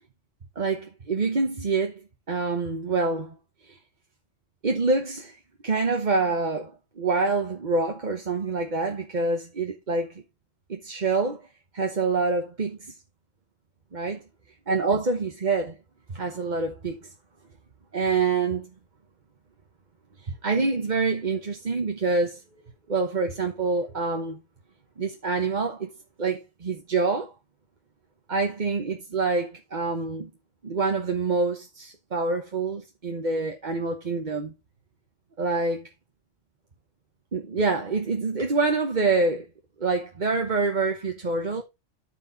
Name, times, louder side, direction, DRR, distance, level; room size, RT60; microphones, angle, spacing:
voice 1, 0.6-1.9 2.3-3.4 3.6-3.8 4.6-10.2 10.7-11.4 11.7-12.9 13.9-14.2 14.7-15.8 16.1-17.1 17.9-18.7 20.2-22.4 22.9-24.4 25.0-25.9 26.2-27.3 28.3-30.3 30.6-34.5 35.4-35.9 37.3-39.5 39.8-41.6, right 3 dB, 40° right, 1.1 m, -26 dB
12.5 x 4.6 x 4.0 m
omnidirectional pair, 1.2 m